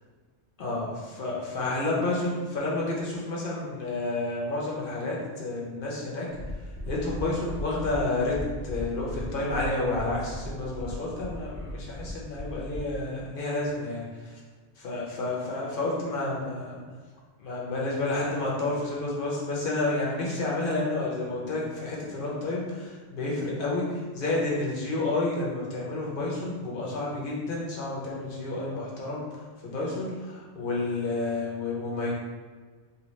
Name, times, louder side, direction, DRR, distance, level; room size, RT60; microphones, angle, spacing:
voice 1, 0.6-6.3 6.9-8.4 8.6-14.4 14.8-16.8 17.4-29.2 29.6-32.2, left 2 dB, 50° left, -4 dB, 0.8 m, -30 dB
sound 1, 6.3-13.0, left 1 dB, 5° left, 0.8 m, -37 dB
2.8 x 2.3 x 3.1 m, 1.5 s
omnidirectional pair, 1.3 m